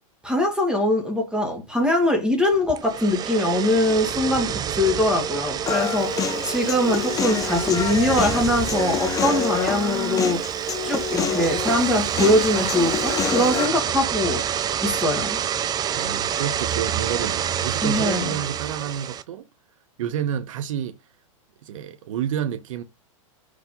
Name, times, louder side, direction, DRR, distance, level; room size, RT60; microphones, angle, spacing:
voice 1, 0.2-14.5 14.8-15.4 17.8-18.3, left 1 dB, 5° right, 2.2 m, -22 dB
sound 1, 2.7-19.2, right 9 dB, 25° right, 0.7 m, -27 dB
Human voice, 5.7-13.7, left 8 dB, 20° left, 0.7 m, -27 dB
voice 2, 15.9-19.5 20.0-21.0 21.6-22.8, right 9 dB, 70° right, 1.4 m, -29 dB
5.5 x 5.3 x 3.8 m
hypercardioid pair, 130°, 17 cm